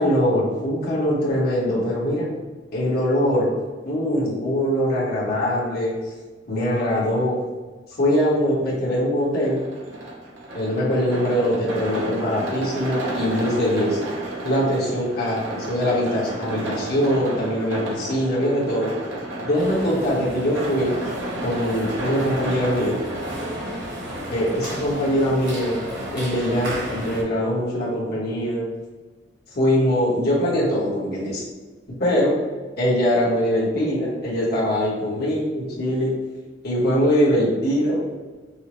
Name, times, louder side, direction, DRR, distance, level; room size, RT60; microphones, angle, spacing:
voice 1, 0.0-2.3 2.7-3.6 3.9-5.9 6.5-7.4 8.0-9.6 10.5-14.0 14.4-18.9 19.4-20.9 21.4-23.0 24.3-25.8 26.1-28.6 29.5-31.4 32.0-32.4 32.8-36.1 36.6-38.0, equal, 55° left, -6 dB, 1.3 m, -22 dB
sound 1, 9.4-26.1, right 1 dB, 85° right, 0.8 m, -33 dB
sound 2, 19.6-27.2, equal, 65° right, 1.3 m, -33 dB
5.5 x 2.1 x 3.0 m, 1.4 s
head